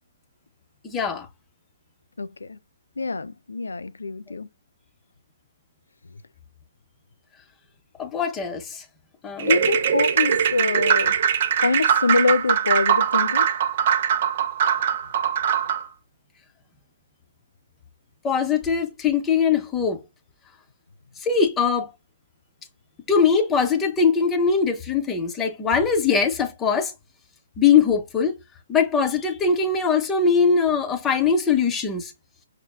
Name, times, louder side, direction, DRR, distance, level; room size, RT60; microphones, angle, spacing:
voice 1, 0.8-1.3 8.0-8.8 9.2-9.5 18.2-20.0 21.2-21.9 23.1-26.9 27.6-28.3 28.7-32.1, left 6 dB, 15° left, 0.7 m, -21 dB
voice 2, 2.2-2.6 3.0-4.5 9.5-11.2 11.6-13.5, left 3 dB, 85° left, 0.4 m, -24 dB
sound 1, 9.4-15.9, right 8 dB, 50° right, 0.5 m, -21 dB
5.9 x 2.1 x 2.2 m
hypercardioid pair, 140°, 0 cm